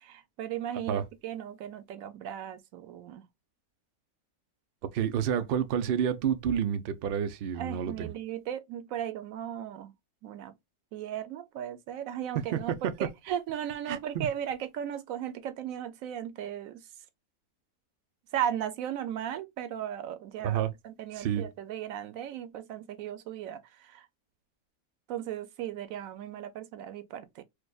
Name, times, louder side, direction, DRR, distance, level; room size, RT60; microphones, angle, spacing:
voice 1, 0.0-3.2 7.6-9.9 10.2-10.5 10.9-16.8 18.3-23.6 23.9-24.1 25.1-27.4, right 10 dB, 70° right, 0.9 m, -36 dB
voice 2, 4.9-8.1 12.3-13.1 13.9-14.3 20.4-20.7 21.1-21.5, right 8 dB, 85° right, 0.5 m, -29 dB
4.7 x 2.2 x 2.2 m
omnidirectional pair, 1.6 m